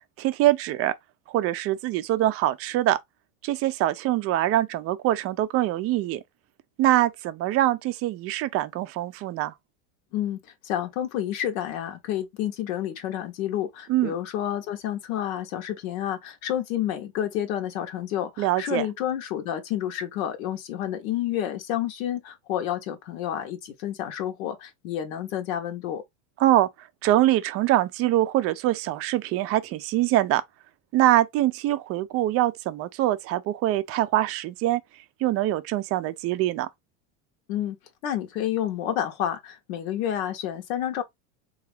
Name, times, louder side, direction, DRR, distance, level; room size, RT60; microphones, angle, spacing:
voice 1, 0.2-0.9 1.3-3.0 3.4-6.2 6.8-9.5 13.9-14.1 18.4-18.8 26.4-26.7 27.0-30.4 30.9-34.8 35.2-36.7, right 14 dB, 35° right, 0.4 m, -24 dB
voice 2, 10.1-26.0 37.5-37.8 38.0-41.0, left 11 dB, 80° left, 0.9 m, -29 dB
3.5 x 2.4 x 3.2 m
supercardioid pair, 125°, 41 cm